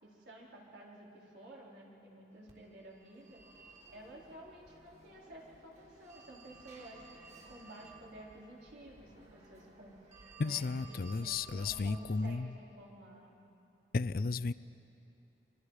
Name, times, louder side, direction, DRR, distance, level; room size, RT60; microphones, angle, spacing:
voice 1, 0.0-7.2 7.4-10.0 10.4-13.3, right 1 dB, 80° right, -4 dB, 4.2 m, -53 dB
Telephone, 2.5-12.3, right 3 dB, 45° right, 3.6 m, -56 dB
voice 2, 10.4-12.5 13.9-14.5, left 4 dB, 55° left, 17 dB, 0.4 m, -34 dB
30.0 x 24.0 x 4.9 m, 2.9 s
head